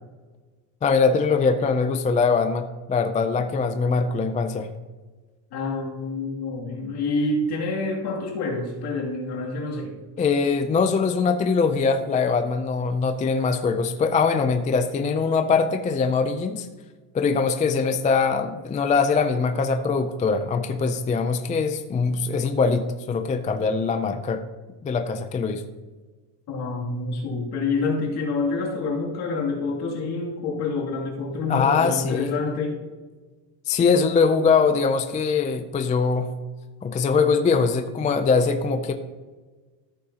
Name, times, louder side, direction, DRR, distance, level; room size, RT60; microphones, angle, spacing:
voice 1, 0.8-4.7 10.2-16.7 17.1-24.4 24.8-25.6 31.5-32.3 33.7-36.3 36.8-38.9, left 5 dB, 20° left, 8 dB, 0.3 m, -22 dB
voice 2, 5.5-10.0 26.5-32.8, left 3 dB, 60° left, -2 dB, 2.6 m, -27 dB
14.5 x 8.6 x 2.8 m, 1.3 s
cardioid pair, 150°, 45 cm